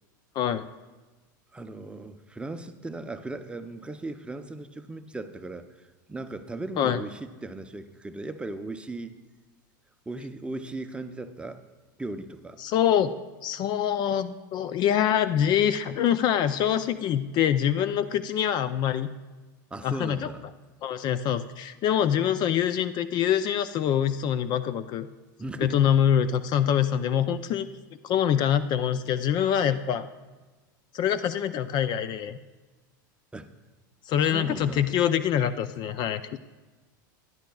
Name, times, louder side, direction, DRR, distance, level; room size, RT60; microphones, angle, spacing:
voice 1, 0.4-0.7 6.8-7.0 12.6-13.1 13.4-19.1 19.8-20.3 20.8-25.1 25.6-27.7 28.0-30.1 30.9-32.4 34.1-36.4, left 9 dB, 45° left, 14 dB, 0.4 m, -25 dB
voice 2, 1.5-9.1 10.1-11.6 12.0-12.6 19.7-20.4 25.4-25.8 33.3-33.5 34.2-34.9, right 2 dB, 10° right, 8 dB, 0.6 m, -37 dB
16.0 x 10.5 x 2.3 m, 1.2 s
hypercardioid pair, 110°, 11 cm